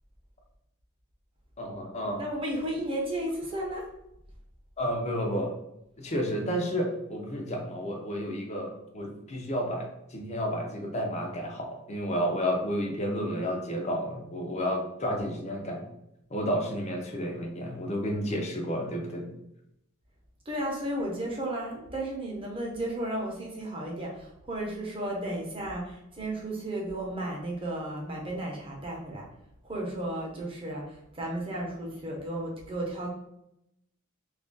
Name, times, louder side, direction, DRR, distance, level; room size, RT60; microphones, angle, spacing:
voice 1, 1.6-2.3 4.8-5.5 6.0-15.8 16.3-19.3, equal, 30° left, 1 dB, 0.6 m, -31 dB
voice 2, 2.2-3.8 20.5-29.2 29.6-33.1, right 1 dB, 25° right, -2 dB, 0.8 m, -34 dB
2.9 x 2.5 x 3.8 m, 0.81 s
head